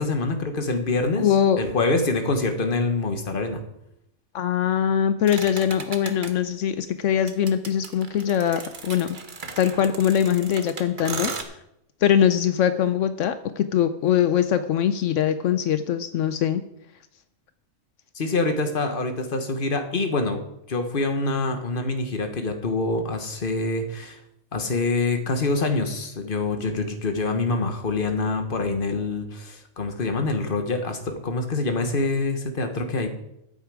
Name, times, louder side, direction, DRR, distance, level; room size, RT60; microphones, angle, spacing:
voice 1, 0.0-3.6 18.1-24.2 24.5-33.1, left 3 dB, 45° left, 7 dB, 1.4 m, -25 dB
voice 2, 1.2-1.6 4.3-9.2 9.6-11.3 12.0-16.6, left 9 dB, 80° left, 11 dB, 1.0 m, -22 dB
sound 1, 5.3-6.3 7.3-11.4, right 4 dB, 45° right, 1.2 m, -35 dB
14.0 x 8.2 x 4.8 m, 0.82 s
omnidirectional pair, 1.3 m